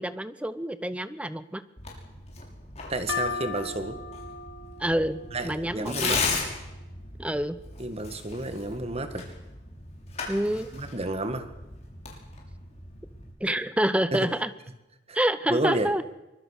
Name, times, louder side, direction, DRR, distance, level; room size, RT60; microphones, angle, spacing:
voice 1, 0.0-1.6 4.8-6.2 7.2-7.6 10.3-10.7 13.4-14.5 15.1-16.0, right 1 dB, 5° right, 13 dB, 0.9 m, -27 dB
Tearing, 1.8-13.3, left 4 dB, 40° left, 6.1 m, -37 dB
voice 2, 2.9-4.0 5.3-6.2 7.8-9.3 10.7-11.5 14.1-14.3 15.1-15.2 15.5-15.9, right 2 dB, 35° right, 9 dB, 1.7 m, -31 dB
sound 1, 3.1-6.6, left 5 dB, 75° left, 2.7 m, -37 dB
24.0 x 22.0 x 6.6 m, 0.99 s
head